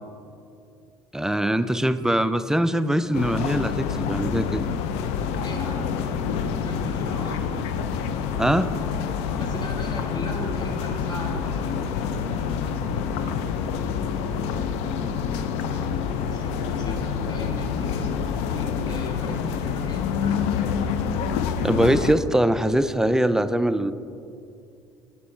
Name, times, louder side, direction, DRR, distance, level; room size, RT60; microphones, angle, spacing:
voice 1, 1.1-4.6 8.4-8.7 21.6-23.9, right 1 dB, 5° right, 12 dB, 0.3 m, -22 dB
sound 1, 3.1-22.1, left 6 dB, 70° left, 0.5 m, -27 dB
voice 2, 5.3-6.1 6.5-8.0 9.4-12.4 16.2-20.7, equal, 35° left, 0 dB, 1.7 m, -38 dB
8.5 x 5.6 x 4.2 m, 2.5 s
hypercardioid pair, 75°, 11 cm